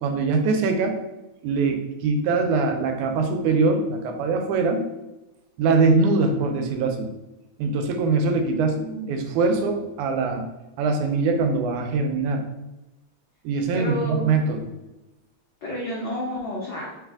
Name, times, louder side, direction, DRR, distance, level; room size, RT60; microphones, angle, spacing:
voice 1, 0.0-1.0 1.4-4.8 5.6-7.1 7.6-8.8 9.1-10.5 10.8-12.4 13.5-14.6, right 4 dB, 85° right, 5 dB, 2.1 m, -22 dB
voice 2, 13.7-14.3 15.6-16.9, equal, 85° left, -6 dB, 1.0 m, -30 dB
4.1 x 3.6 x 3.5 m, 1.0 s
omnidirectional pair, 3.4 m